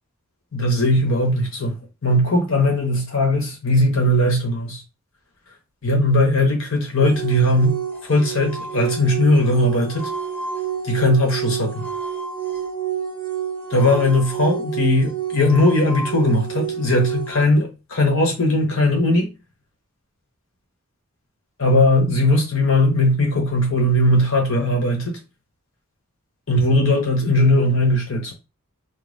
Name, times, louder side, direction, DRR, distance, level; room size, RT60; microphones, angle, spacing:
voice 1, 0.5-1.8 2.0-4.8 5.8-7.8 8.1-10.1 10.8-11.9 13.7-19.3 21.6-25.2 26.5-28.3, left 1 dB, 65° left, 1.0 m, -19 dB
sound 1, 7.0-17.4, right 8 dB, 5° left, 0.8 m, -29 dB
5.1 x 2.1 x 3.9 m
head